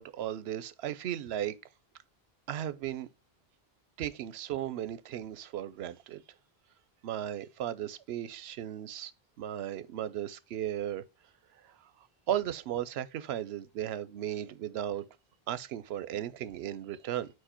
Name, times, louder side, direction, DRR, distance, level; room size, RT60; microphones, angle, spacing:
voice 1, 0.0-1.5 2.5-3.1 4.0-6.2 7.0-9.1 9.4-11.0 12.3-15.1 15.5-17.3, right 11 dB, 85° right, 0.8 m, -35 dB
4.8 x 4.7 x 4.3 m
omnidirectional pair, 1.0 m